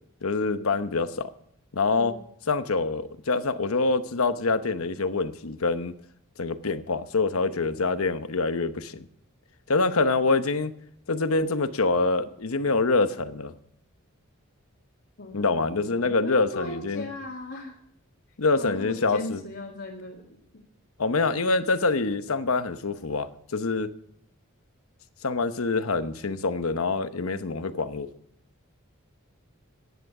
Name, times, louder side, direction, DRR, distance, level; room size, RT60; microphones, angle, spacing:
voice 1, 0.2-1.3 1.7-2.1 2.5-5.9 6.4-9.1 9.7-10.7 11.1-13.5 15.3-17.0 18.4-19.4 21.0-23.9 25.2-28.1, left 3 dB, 80° left, 11 dB, 0.9 m, -25 dB
voice 2, 15.2-17.8 18.5-20.4, left 2 dB, 60° left, -2 dB, 2.1 m, -38 dB
15.0 x 10.5 x 4.9 m, 0.71 s
head